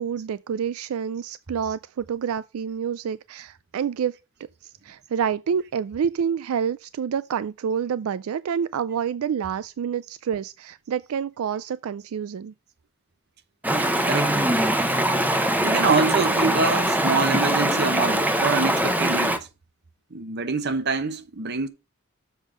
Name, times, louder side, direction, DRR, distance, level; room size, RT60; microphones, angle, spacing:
voice 1, 0.0-4.2 4.6-12.5, right 7 dB, 85° right, 0.3 m, -28 dB
Stream, 13.6-19.4, right 1 dB, 10° right, 0.7 m, -22 dB
voice 2, 14.0-14.4 15.6-19.5 20.1-21.7, right 4 dB, 50° right, 1.0 m, -25 dB
7.2 x 5.4 x 5.0 m
head